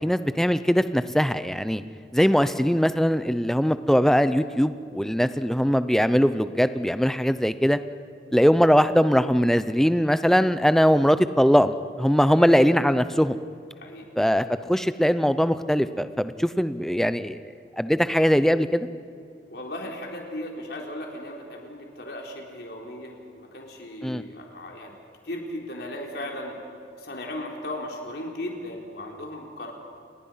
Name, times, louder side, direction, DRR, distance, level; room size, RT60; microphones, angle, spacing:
voice 1, 0.0-1.8 2.1-7.8 8.3-13.4 14.2-17.4 17.8-18.9 24.0-24.2, equal, ahead, 12 dB, 0.7 m, -21 dB
voice 2, 13.8-14.1 19.5-25.0 25.2-26.6 27.0-29.7, left 1 dB, 70° left, 0 dB, 4.1 m, -36 dB
29.5 x 20.5 x 5.8 m, 2.4 s
head